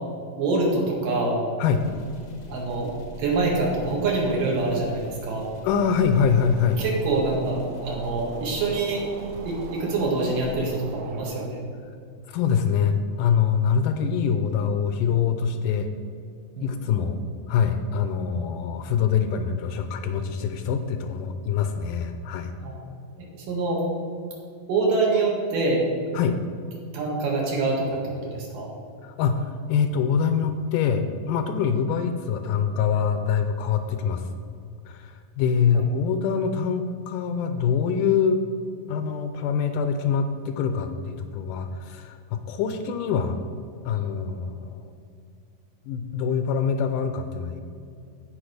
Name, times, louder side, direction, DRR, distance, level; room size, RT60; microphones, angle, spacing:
voice 1, 0.4-1.4 2.5-5.5 6.8-9.1 9.4-11.6 16.6-16.7 22.6-22.8 23.2-23.8 24.7-25.8 26.9-28.7 35.7-35.8, right 3 dB, 70° right, -2 dB, 3.4 m, -25 dB
sound 1, 1.7-11.5, right 1 dB, 60° left, 1.1 m, -43 dB
voice 2, 5.6-6.8 12.3-15.9 16.6-17.2 17.5-22.5 26.1-26.4 29.0-34.3 34.9-38.4 38.9-43.4 43.9-44.9 45.9-47.6, left 6 dB, 80° left, 8 dB, 2.1 m, -24 dB
sound 2, 6.3-11.5, right 6 dB, 90° right, 1.7 m, -42 dB
15.0 x 5.2 x 5.1 m, 2.3 s
omnidirectional pair, 4.0 m